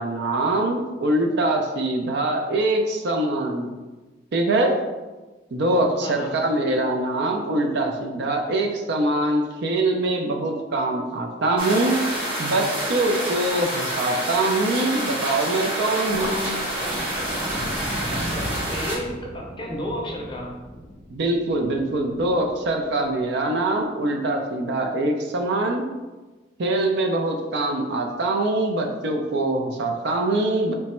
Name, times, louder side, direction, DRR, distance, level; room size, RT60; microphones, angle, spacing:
voice 1, 0.0-3.7 4.3-4.8 5.5-12.0 12.4-16.6 21.1-25.8 26.6-30.7, right 2 dB, 65° right, 3 dB, 0.5 m, -23 dB
voice 2, 6.0-6.4 18.3-20.6, left 1 dB, 25° left, -1 dB, 0.5 m, -32 dB
sound 1, 11.6-19.0, right 1 dB, 30° right, 1.1 m, -28 dB
Thunder, 16.0-23.1, equal, 10° right, 0.7 m, -35 dB
3.3 x 2.0 x 4.2 m, 1.2 s
head